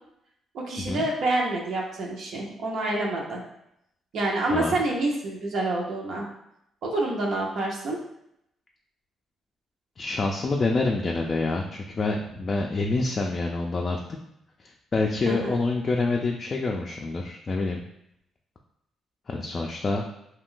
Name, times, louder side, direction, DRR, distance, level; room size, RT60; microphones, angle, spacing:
voice 1, 0.5-3.4 4.1-6.3 6.8-8.0 15.3-15.6, right 2 dB, 70° right, -2 dB, 0.6 m, -27 dB
voice 2, 10.0-14.0 14.9-17.8 19.3-20.0, left 3 dB, 40° left, 0 dB, 0.3 m, -27 dB
2.4 x 2.2 x 3.7 m, 0.78 s
cardioid pair, 90°, 0 cm